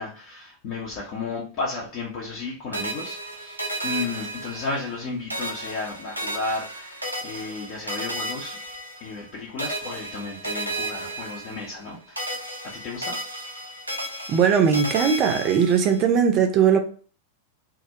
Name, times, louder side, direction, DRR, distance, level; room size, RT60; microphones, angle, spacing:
voice 1, 0.0-8.6 9.0-13.2, left 3 dB, 40° left, 0.6 m, -33 dB
sound 1, 2.7-5.0 5.3-9.3 9.6-11.9 12.2-16.0, right 1 dB, 85° right, 0.4 m, -33 dB
voice 2, 14.3-16.8, right 7 dB, 35° right, 0.5 m, -19 dB
2.3 x 2.1 x 2.8 m
figure-of-eight pair, 90°, 0 cm